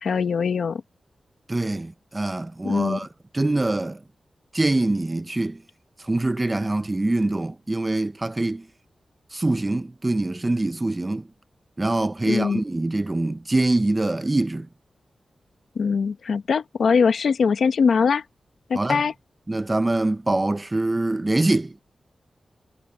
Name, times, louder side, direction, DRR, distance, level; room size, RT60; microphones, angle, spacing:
voice 1, 0.0-0.8 2.6-3.0 12.2-12.6 15.7-18.2 18.7-19.1, left 5 dB, 80° left, 1.2 m, -22 dB
voice 2, 1.5-3.1 3.3-4.0 4.5-5.6 6.0-8.7 9.3-11.3 11.8-14.7 18.7-19.0 19.5-21.8, right 2 dB, 20° right, 0.6 m, -24 dB
wide cardioid pair, 160°, 0 cm